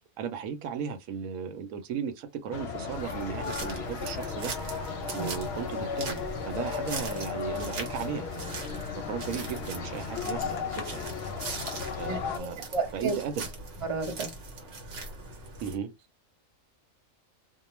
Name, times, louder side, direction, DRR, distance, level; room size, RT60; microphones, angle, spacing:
voice 1, 0.2-4.5 5.1-8.6 9.1-11.2 12.0-12.6 12.9-13.5 15.6-15.9, right 7 dB, 85° right, 1.0 m, -36 dB
sound 1, 2.5-12.4, left 5 dB, 60° left, 0.7 m, -35 dB
sound 2, 2.9-15.8, right 3 dB, 65° right, 1.1 m, -41 dB
voice 2, 12.1-12.5 12.7-13.1 13.9-14.3, right 4 dB, 30° right, 0.7 m, -31 dB
2.3 x 2.2 x 3.0 m
omnidirectional pair, 1.4 m